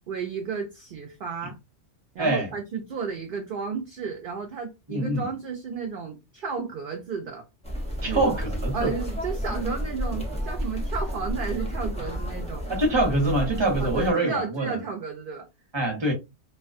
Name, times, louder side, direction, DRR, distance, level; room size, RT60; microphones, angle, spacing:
voice 1, 0.1-1.6 2.1-7.4 8.0-8.3 8.7-12.7 13.8-15.5, right 5 dB, 60° right, 0.6 m, -33 dB
voice 2, 4.9-5.3 8.0-8.9 12.7-14.8 15.7-16.1, right 1 dB, 25° right, 0.8 m, -24 dB
sound 1, 7.6-14.1, equal, 10° left, 0.5 m, -31 dB
2.3 x 2.2 x 2.4 m
omnidirectional pair, 1.3 m